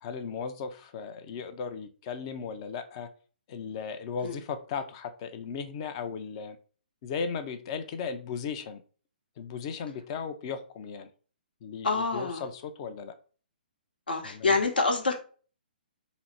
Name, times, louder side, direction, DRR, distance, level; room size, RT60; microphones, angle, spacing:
voice 1, 0.0-3.1 3.5-6.6 7.0-8.8 9.4-11.1 11.6-13.1 14.2-14.6, left 6 dB, 35° left, 9 dB, 0.5 m, -36 dB
voice 2, 11.8-12.4 14.1-15.2, left 3 dB, 70° left, 4 dB, 1.0 m, -26 dB
4.0 x 2.0 x 4.3 m, 0.40 s
figure-of-eight pair, 130°, 5 cm